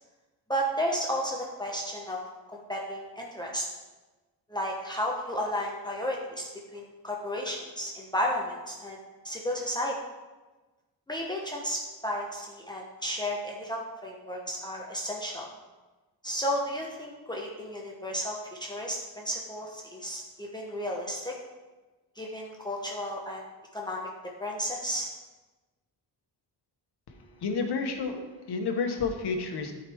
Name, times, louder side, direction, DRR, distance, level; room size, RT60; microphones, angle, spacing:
voice 1, 0.5-2.2 2.5-3.7 4.5-9.0 9.2-10.0 11.1-15.5 16.2-21.4 22.2-23.5 23.7-24.1 24.4-25.1, equal, 10° left, -2 dB, 1.0 m, -33 dB
voice 2, 27.1-28.2 28.5-29.7, left 4 dB, 70° left, 4 dB, 1.2 m, -30 dB
12.5 x 5.0 x 3.5 m, 1.2 s
wide cardioid pair, 135°, 41 cm